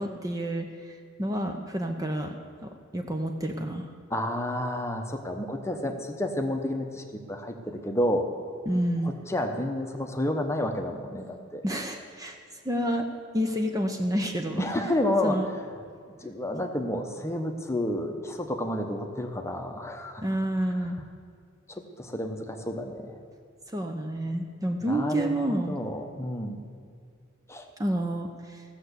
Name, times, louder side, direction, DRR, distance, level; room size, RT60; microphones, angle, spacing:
voice 1, 0.0-2.4 2.6-3.9 8.7-9.1 11.6-12.4 12.6-13.0 13.3-14.6 15.2-15.5 20.2-21.0 23.7-25.8 27.8-28.6, right 1 dB, 15° right, 4 dB, 0.7 m, -29 dB
voice 2, 4.1-8.3 9.0-11.6 14.6-15.4 16.2-20.2 21.7-23.2 24.8-26.6 27.5-27.6, left 1 dB, 15° left, 4 dB, 0.9 m, -30 dB
15.5 x 6.8 x 8.2 m, 2.2 s
head